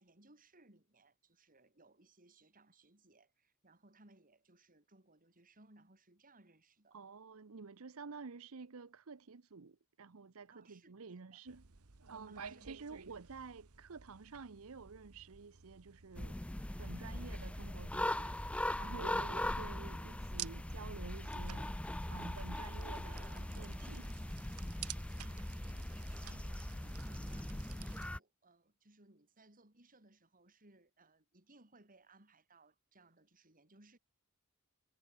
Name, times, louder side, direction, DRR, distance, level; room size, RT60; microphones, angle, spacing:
voice 1, 0.0-7.0 10.5-11.4 12.3-13.3 25.2-34.0, right 2 dB, 40° right, 5.4 m, -65 dB
voice 2, 6.9-11.6 12.1-16.4 16.8-21.7 22.1-24.1, right 4 dB, 70° right, 0.8 m, -51 dB
sound 1, 11.4-28.1, right 9 dB, 85° right, 1.3 m, -53 dB
sound 2, 16.1-28.2, left 1 dB, 5° left, 0.4 m, -40 dB
head